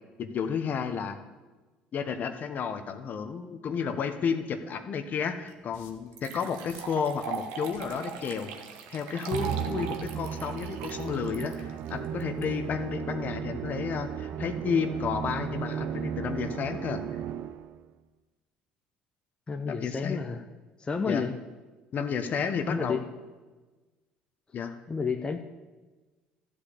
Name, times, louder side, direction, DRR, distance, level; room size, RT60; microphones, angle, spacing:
voice 1, 0.2-1.2 1.9-8.5 8.9-17.0 19.6-20.2 21.1-21.2 21.9-23.0 24.5-24.8, left 6 dB, 50° left, 8 dB, 1.1 m, -32 dB
sound 1, 4.9-5.0 5.7-6.1 6.7-7.1 7.7-8.0 8.7-8.9, left 6 dB, 75° left, 1.4 m, -53 dB
sound 2, 5.5-5.6 6.1-12.4, right 7 dB, 80° right, 1.3 m, -40 dB
Musical instrument, 9.3-17.8, right 9 dB, 60° right, 0.6 m, -35 dB
voice 2, 19.5-20.4 20.8-21.4 22.7-23.0 24.9-25.4, left 5 dB, 25° left, 5 dB, 0.8 m, -30 dB
13.0 x 5.1 x 8.7 m, 1.3 s
supercardioid pair, 80°, 4 cm